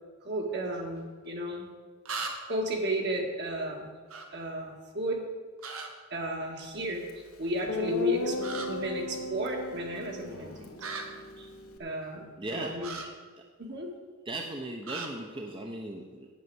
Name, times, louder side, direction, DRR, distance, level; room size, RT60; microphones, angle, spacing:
voice 1, 0.2-1.7 2.5-3.9 4.3-5.2 6.1-7.1 7.4-8.4 8.7-10.7 11.4-11.5 11.8-13.0 13.6-13.9, equal, 55° right, 1 dB, 2.0 m, -33 dB
sound 1, 1.0-1.1 2.1-2.6 4.1-4.3 5.6-5.9 8.4-8.7 10.8-11.0 12.8-13.1 14.8-15.1, right 4 dB, 80° right, 1.4 m, -37 dB
Guitar, 7.1-7.2 7.7-11.8, left 1 dB, 85° left, 1.4 m, -37 dB
voice 2, 12.4-12.7 14.3-16.3, right 2 dB, 25° right, 1 dB, 0.8 m, -37 dB
8.5 x 8.3 x 7.8 m, 1.5 s
head